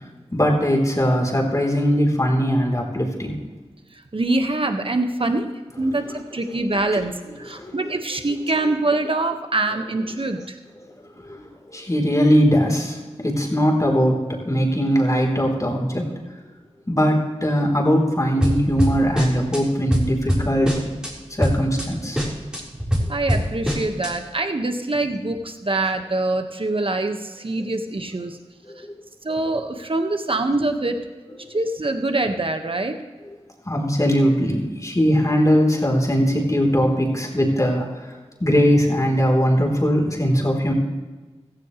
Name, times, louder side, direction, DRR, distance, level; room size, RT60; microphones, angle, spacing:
voice 1, 0.3-3.3 6.9-7.0 7.5-7.8 11.2-16.1 16.9-20.8 21.3-22.2 28.7-28.9 31.4-31.5 33.7-37.9 38.4-40.7, equal, 30° left, 0 dB, 3.7 m, -20 dB
voice 2, 3.9-5.5 5.8-10.6 23.1-28.4 28.8-28.9 29.2-31.0 31.5-33.0, right 2 dB, 50° right, 6 dB, 1.5 m, -24 dB
sound 1, 18.4-19.6 19.9-21.1 21.4-21.9 22.2-24.1, equal, 5° right, 4.3 m, -23 dB
16.0 x 14.5 x 3.3 m, 1.3 s
cardioid pair, 40°, 11 cm